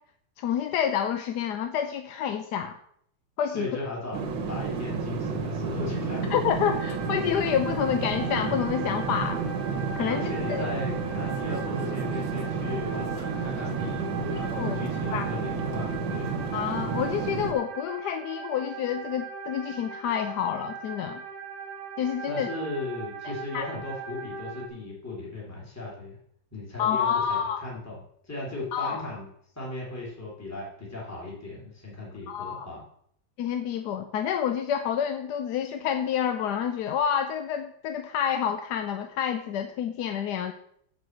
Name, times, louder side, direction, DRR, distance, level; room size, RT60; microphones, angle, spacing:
voice 1, 0.4-2.8 3.4-3.7 6.3-9.4 9.9-10.6 14.5-14.8 15.1-15.3 16.5-21.2 22.0-22.5 23.5-23.7 26.8-27.6 28.7-29.1 32.3-32.7 33.4-40.5, left 8 dB, 70° left, 7 dB, 1.1 m, -28 dB
voice 2, 3.5-6.3 10.1-16.4 22.3-26.2 26.5-29.3 29.6-32.8, left 2 dB, 10° left, -5 dB, 2.6 m, -37 dB
sound 1, 4.1-17.5, right 4 dB, 75° right, 2.0 m, -31 dB
sound 2, 6.6-24.7, right 6 dB, 55° right, 1.5 m, -40 dB
7.1 x 6.2 x 7.8 m, 0.69 s
omnidirectional pair, 2.1 m